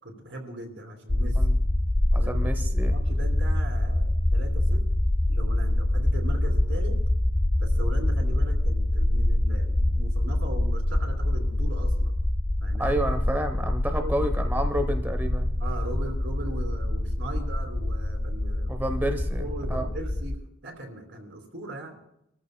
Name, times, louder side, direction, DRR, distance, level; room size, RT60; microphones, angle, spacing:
voice 1, 0.0-1.5 2.2-2.4 2.8-4.9 5.3-7.0 7.6-12.1 12.6-13.0 13.9-14.3 15.6-18.8 19.4-22.0, right 1 dB, 60° right, 1 dB, 2.9 m, -39 dB
sound 1, 1.1-20.4, left 1 dB, 15° left, 0.4 m, -25 dB
voice 2, 2.1-3.0 12.8-15.5 17.2-17.4 18.7-19.9, right 1 dB, 10° right, 5 dB, 0.9 m, -30 dB
26.0 x 14.0 x 2.2 m, 0.82 s
head